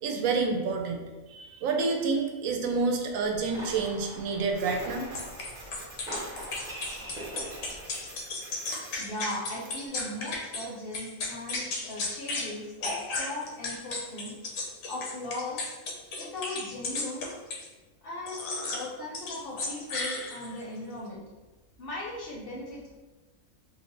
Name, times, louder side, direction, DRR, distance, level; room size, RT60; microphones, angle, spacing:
voice 1, 0.0-1.0 1.3-5.1, right 4 dB, 90° right, 3 dB, 1.0 m, -28 dB
sound 1, 3.1-8.2, right 1 dB, 5° right, 0.5 m, -42 dB
Printer, 4.5-9.9, right 2 dB, 55° right, 0.7 m, -49 dB
sound 2, 5.1-10.6 10.9-12.5 12.8-17.7 18.3-18.9 19.1-20.6, left 3 dB, 85° left, 1.0 m, -34 dB
voice 2, 9.0-14.3 14.9-15.7 16.2-17.3 18.0-21.2 21.8-22.9, left 1 dB, 55° left, -3 dB, 0.7 m, -38 dB
3.3 x 2.0 x 3.8 m, 1.2 s
omnidirectional pair, 1.4 m